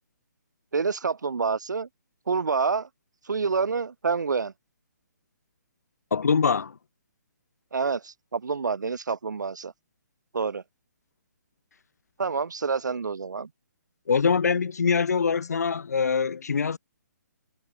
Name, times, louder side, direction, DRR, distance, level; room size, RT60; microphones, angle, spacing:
voice 1, 0.7-1.9 2.3-2.9 3.2-4.5 7.7-9.7 10.3-10.6 12.2-13.5, right 5 dB, 75° right, 4.5 m, -27 dB
voice 2, 6.1-6.7 14.1-16.8, left 5 dB, 60° left, 1.8 m, -23 dB
hypercardioid pair, 175°, 10 cm